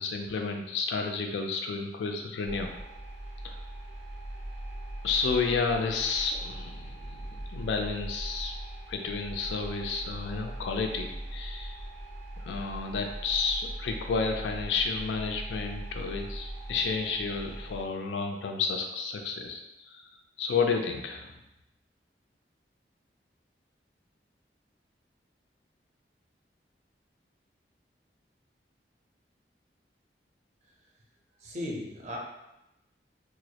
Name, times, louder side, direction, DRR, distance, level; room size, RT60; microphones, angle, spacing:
voice 1, 0.0-2.7 3.4-3.6 5.0-8.5 8.9-11.9 12.4-20.1 20.4-21.3, left 4 dB, 85° left, 3 dB, 0.3 m, -31 dB
sound 1, 2.4-17.8, right 1 dB, 85° right, 0.6 m, -40 dB
voice 2, 31.4-32.2, left 1 dB, 40° right, -1 dB, 0.4 m, -36 dB
2.3 x 2.0 x 2.7 m, 0.90 s
head